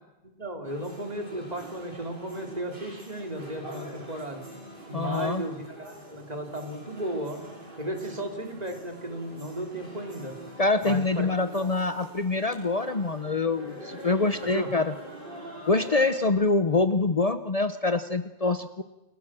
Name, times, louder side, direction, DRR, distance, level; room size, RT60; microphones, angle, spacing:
voice 1, 0.2-4.4 4.9-7.4 7.8-10.4 10.8-11.7 14.4-14.7, right 1 dB, 40° right, 4 dB, 3.5 m, -35 dB
sound 1, 0.6-16.3, equal, 55° right, 5.1 m, -44 dB
voice 2, 4.9-5.4 10.6-14.9 15.7-18.8, left 3 dB, 40° left, 11 dB, 0.9 m, -25 dB
29.5 x 17.5 x 7.5 m, 1.0 s
omnidirectional pair, 1.1 m